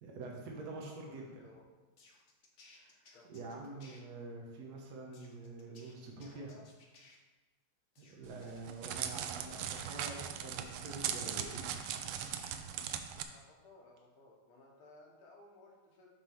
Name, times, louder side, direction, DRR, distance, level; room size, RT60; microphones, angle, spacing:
voice 1, 0.0-1.5 2.7-3.0 3.3-6.5 8.0-11.7, right 3 dB, 55° right, -1 dB, 1.5 m, -46 dB
voice 2, 0.8-1.6 3.1-4.0 6.2-6.7 13.3-16.1, left 2 dB, 75° left, -2 dB, 2.1 m, -59 dB
sound 1, 2.0-4.0 5.1-7.2 8.0-10.0 10.5-12.5 12.9-13.4, left 3 dB, 50° left, 0.9 m, -61 dB
Crackle, 8.3-13.2, right 9 dB, 90° right, 1.5 m, -39 dB
7.5 x 3.6 x 5.5 m, 1.2 s
omnidirectional pair, 2.4 m